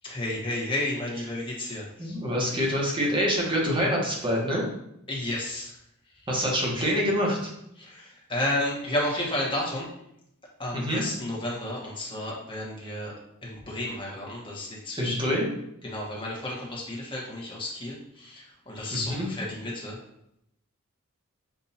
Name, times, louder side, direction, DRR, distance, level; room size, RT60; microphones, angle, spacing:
voice 1, 0.0-2.2 5.1-5.8 6.1-6.3 7.8-9.9 10.6-13.1 13.4-15.3 15.8-20.0, left 1 dB, 25° left, -3 dB, 1.2 m, -32 dB
voice 2, 2.0-4.6 6.3-7.5 10.7-11.0 15.0-15.5 18.9-19.3, equal, 20° right, -2 dB, 1.1 m, -26 dB
6.8 x 2.7 x 2.8 m, 0.78 s
head